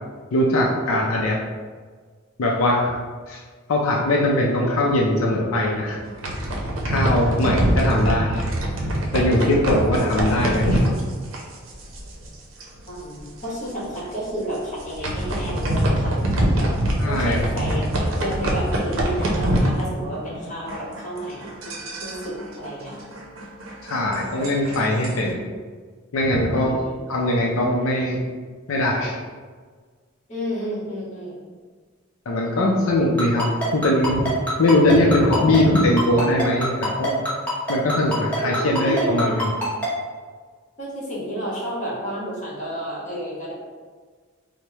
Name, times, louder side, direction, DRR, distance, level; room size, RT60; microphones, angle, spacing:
voice 1, 0.3-1.4 2.4-3.0 3.3-3.4 3.7-6.0 6.8-8.5 9.1-10.8 17.0-17.4 23.8-25.4 26.1-26.7 27.1-28.2 28.7-29.2 32.3-33.5 33.7-34.3 34.6-37.3 37.7-39.5, left 1 dB, 85° left, -2 dB, 0.5 m, -21 dB
sound 1, 6.0-12.3 12.6-12.9 13.2-13.3 13.8-14.0 14.6-20.4 20.7-25.3, right 1 dB, 70° right, 0.6 m, -24 dB
voice 2, 12.9-16.2 16.6-16.7 17.1-17.8 18.1-22.9 26.7-26.9 30.3-31.4 38.4-39.5 40.8-43.5, equal, 35° left, -6 dB, 1.2 m, -31 dB
Ringtone, 33.2-39.9, left 1 dB, 5° left, 0.9 m, -25 dB
4.6 x 2.1 x 2.8 m, 1.5 s
head